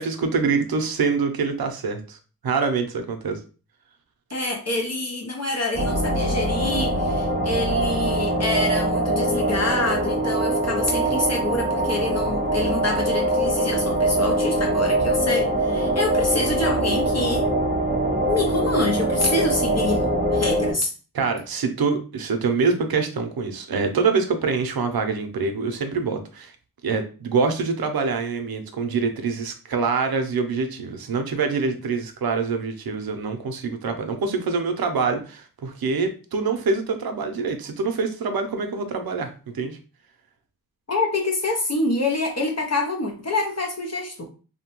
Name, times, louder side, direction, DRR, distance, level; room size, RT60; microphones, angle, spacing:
voice 1, 0.0-2.2 2.4-3.4 21.1-26.5 26.8-39.8, right 4 dB, 85° right, 6 dB, 0.6 m, -25 dB
voice 2, 4.3-17.5 18.3-20.0 20.3-20.9 40.9-44.3, left 2 dB, 45° left, 2 dB, 0.5 m, -26 dB
sound 1, 5.7-20.7, right 1 dB, 25° right, 0.6 m, -23 dB
2.7 x 2.1 x 2.9 m, 0.35 s
wide cardioid pair, 100°, 35 cm